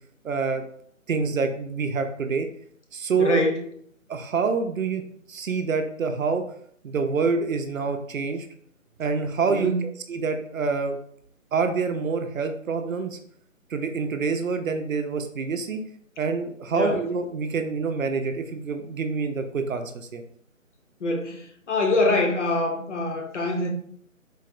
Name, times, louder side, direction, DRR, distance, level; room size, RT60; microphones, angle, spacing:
voice 1, 0.2-0.6 1.1-2.5 2.9-3.4 4.1-5.0 5.3-6.4 6.8-8.5 9.0-11.0 11.5-13.2 13.7-15.8 16.2-20.2, right 5 dB, 75° right, 6 dB, 0.6 m, -26 dB
voice 2, 3.2-3.6 9.4-9.9 16.7-17.0 21.0-23.7, left 2 dB, 60° left, 3 dB, 0.7 m, -24 dB
4.0 x 2.0 x 2.5 m, 0.64 s
figure-of-eight pair, 155°, 41 cm